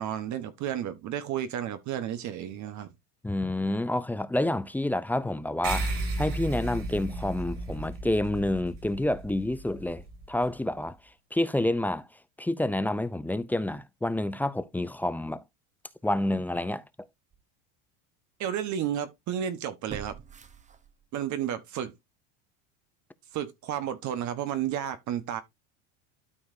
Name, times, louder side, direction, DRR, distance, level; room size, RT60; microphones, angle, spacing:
voice 1, 0.0-2.9 18.4-20.2 21.1-21.9 23.3-25.4, right 10 dB, 50° right, 1.1 m, -32 dB
voice 2, 3.2-11.0 11.3-12.1 12.4-15.4 16.0-16.8, left 1 dB, 5° left, 0.4 m, -28 dB
sound 1, 5.6-10.5, right 2 dB, 70° right, 5.8 m, -34 dB
sound 2, 16.6-16.7 17.3-17.4 19.9-21.3 21.7-21.8, right 7 dB, 20° right, 0.8 m, -44 dB
12.5 x 4.6 x 2.6 m
supercardioid pair, 115°, 38 cm